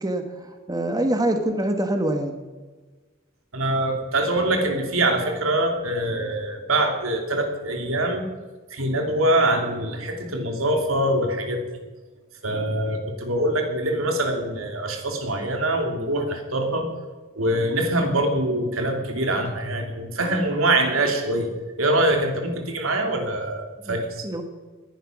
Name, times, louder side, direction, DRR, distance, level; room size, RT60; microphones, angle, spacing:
voice 1, 0.0-2.4 23.9-24.0 24.2-24.4, right 1 dB, 20° right, 5 dB, 1.3 m, -25 dB
voice 2, 3.5-8.2 8.7-11.6 12.4-16.9 17.3-21.5 21.8-24.3, right 1 dB, 85° right, 4 dB, 2.9 m, -24 dB
20.0 x 10.5 x 6.1 m, 1.3 s
head